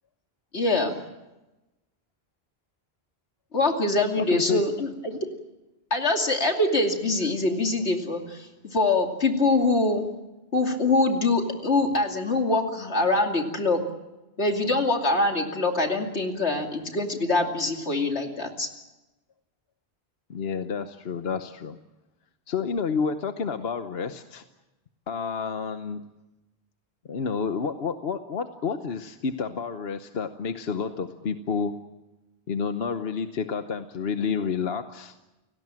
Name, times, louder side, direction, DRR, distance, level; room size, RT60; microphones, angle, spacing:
voice 1, 0.5-1.0 3.5-5.2 5.9-10.0 10.5-13.8 14.4-18.7, left 2 dB, 90° left, 3 dB, 3.0 m, -24 dB
voice 2, 4.2-4.6 20.3-21.8 22.5-24.4 25.1-26.0 27.0-31.7 32.5-35.2, left 6 dB, 65° left, 8 dB, 1.2 m, -29 dB
30.0 x 17.5 x 7.6 m, 1.0 s
omnidirectional pair, 1.1 m